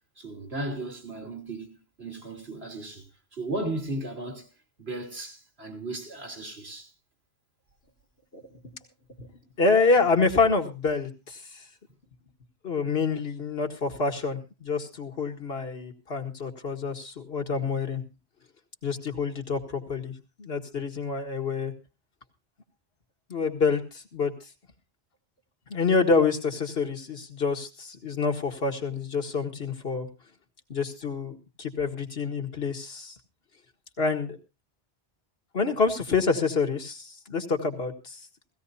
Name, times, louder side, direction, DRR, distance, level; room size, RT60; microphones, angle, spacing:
voice 1, 0.2-4.5 4.8-6.9, right 2 dB, 85° right, 3.2 m, -36 dB
voice 2, 8.3-8.7 9.2-9.3 9.6-11.6 12.6-18.0 18.8-20.1 20.4-21.7 23.3-24.3 25.7-30.1 30.7-33.2 34.0-34.4 35.5-38.2, left 4 dB, 75° left, 2.0 m, -27 dB
17.0 x 16.5 x 2.7 m
omnidirectional pair, 1.0 m